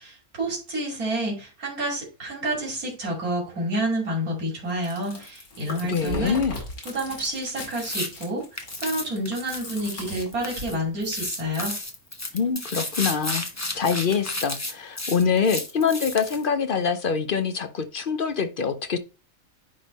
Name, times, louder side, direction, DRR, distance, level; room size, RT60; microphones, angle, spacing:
voice 1, 0.0-6.4 6.9-11.8, right 1 dB, 80° right, 3.0 m, -29 dB
Chewing mastication, 4.7-10.8, left 1 dB, 85° left, 2.7 m, -38 dB
voice 2, 5.8-6.6 12.3-13.4 13.7-19.0, left 6 dB, 50° left, 0.7 m, -25 dB
sound 1, 7.7-8.1 8.6-10.7 11.0-16.4, left 1 dB, 15° left, 1.0 m, -32 dB
10.0 x 3.6 x 4.0 m
omnidirectional pair, 1.5 m